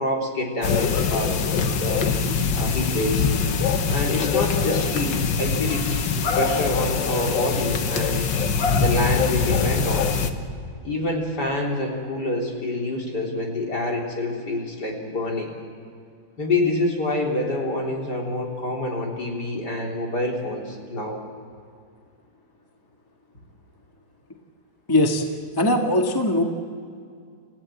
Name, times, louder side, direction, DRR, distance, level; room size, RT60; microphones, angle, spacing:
voice 1, 0.0-2.1 2.6-3.3 3.9-5.9 6.3-8.3 8.8-10.1 10.8-15.5 16.4-21.2, left 1 dB, 55° left, -1 dB, 4.2 m, -27 dB
sound 1, 0.6-10.3, left 5 dB, 70° left, 1.9 m, -23 dB
voice 2, 24.9-25.3 25.6-26.4, left 1 dB, 10° left, 2 dB, 1.6 m, -20 dB
29.5 x 15.5 x 7.7 m, 2.3 s
omnidirectional pair, 2.1 m